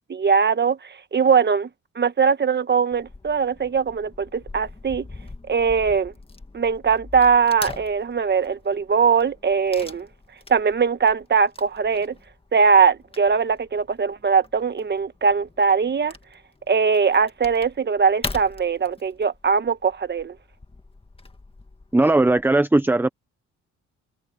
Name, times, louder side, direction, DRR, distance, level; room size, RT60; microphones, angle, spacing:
voice 1, 0.1-1.7 1.9-5.1 5.5-6.1 6.5-10.1 10.5-12.1 12.5-16.1 16.7-20.3, right 6 dB, 35° right, 1.4 m, -21 dB
Wood / Tearing, 2.9-22.5, left 3 dB, 20° left, 1.9 m, -42 dB
voice 2, 21.9-23.1, right 2 dB, 5° right, 0.8 m, -18 dB
cardioid pair, 90°, 30 cm